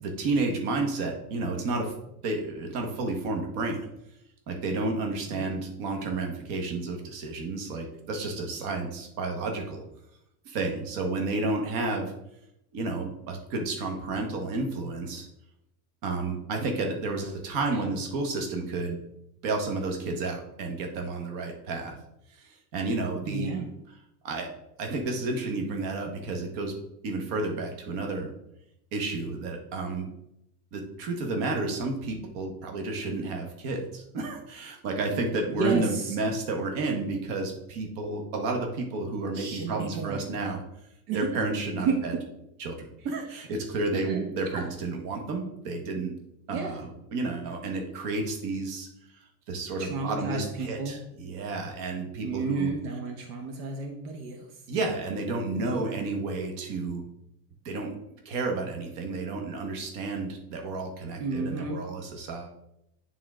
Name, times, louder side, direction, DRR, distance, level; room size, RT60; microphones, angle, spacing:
voice 1, 0.0-1.9 2.2-3.8 4.5-9.8 10.4-12.1 12.7-15.3 16.0-19.0 19.4-22.0 22.4-23.7 24.2-24.5 24.8-26.7 27.0-28.3 28.9-30.1 30.7-40.6 41.1-42.1 42.6-46.1 46.5-48.9 49.5-52.7 54.7-57.0 57.6-58.0 58.2-62.5, right 3 dB, 55° right, 3 dB, 1.4 m, -31 dB
voice 2, 23.3-23.6 35.5-36.1 39.3-40.3 41.1-41.3 41.8-42.2 43.9-44.3 44.5-44.6 46.0-46.1 46.5-46.8 49.8-51.0 52.2-54.5 55.6-56.0 61.2-61.8, right 5 dB, 85° right, 4 dB, 1.2 m, -32 dB
8.9 x 3.8 x 3.7 m, 0.81 s
cardioid pair, 160°, 45 cm